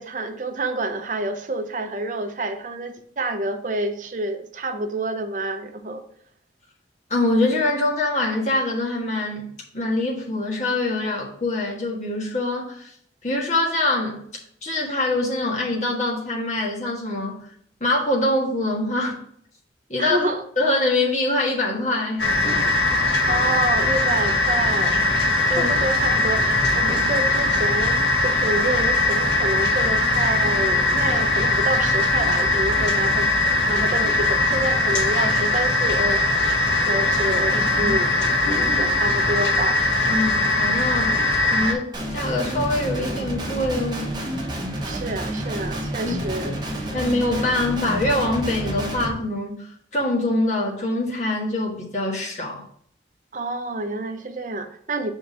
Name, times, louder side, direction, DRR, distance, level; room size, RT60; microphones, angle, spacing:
voice 1, 0.0-6.0 20.0-20.4 23.3-25.0 25.5-33.3 33.6-36.5 36.8-38.4 38.7-39.8 44.8-46.5 46.8-46.9 47.4-47.5 53.3-55.1, right 2 dB, 45° right, 7 dB, 0.6 m, -28 dB
voice 2, 7.1-9.5 9.7-12.9 13.2-14.2 14.6-17.5 17.8-19.2 19.9-20.3 20.6-22.3 25.5-25.7 37.8-38.0 40.1-41.2 41.5-44.1 46.0-46.1 46.9-52.7, left 2 dB, 40° left, -2 dB, 1.4 m, -24 dB
sound 1, 22.2-41.7, left 2 dB, 75° left, 1.2 m, -20 dB
Guitar, 41.9-49.1, right 1 dB, 25° right, 1.0 m, -29 dB
5.7 x 3.7 x 5.5 m, 0.63 s
head